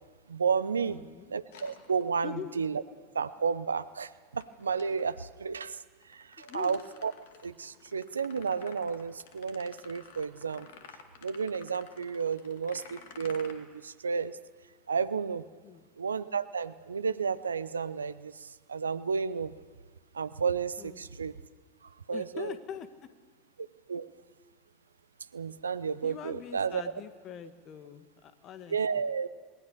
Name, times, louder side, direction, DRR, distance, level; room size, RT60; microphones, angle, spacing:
voice 1, 0.3-1.0 1.3-2.8 3.1-5.8 6.1-7.1 7.4-10.7 11.2-14.4 14.9-15.4 16.0-19.5 20.1-21.3 22.1-22.5 23.9-24.1 25.3-26.8 28.7-29.3, right 6 dB, 85° right, 15 dB, 0.8 m, -32 dB
voice 2, 0.8-1.3 2.2-2.5 6.4-6.8 15.6-15.9 20.8-21.0 22.1-23.1 26.0-28.8, left 9 dB, 40° left, 11 dB, 1.8 m, -43 dB
sound 1, 1.5-2.6 4.4-5.2 6.0-13.5, left 6 dB, 65° left, 2.5 m, -52 dB
27.5 x 19.5 x 6.8 m, 1.5 s
figure-of-eight pair, 80°, 0 cm